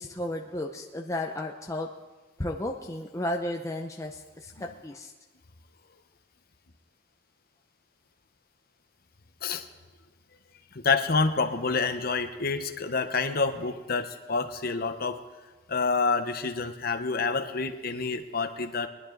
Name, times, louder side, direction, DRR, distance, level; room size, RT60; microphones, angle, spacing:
voice 1, 0.0-1.9 2.4-5.1, left 1 dB, 15° left, 1 dB, 0.6 m, -33 dB
voice 2, 10.7-15.2 15.7-18.9, left 4 dB, 55° left, 8 dB, 0.9 m, -28 dB
21.5 x 11.0 x 4.0 m, 1.3 s
head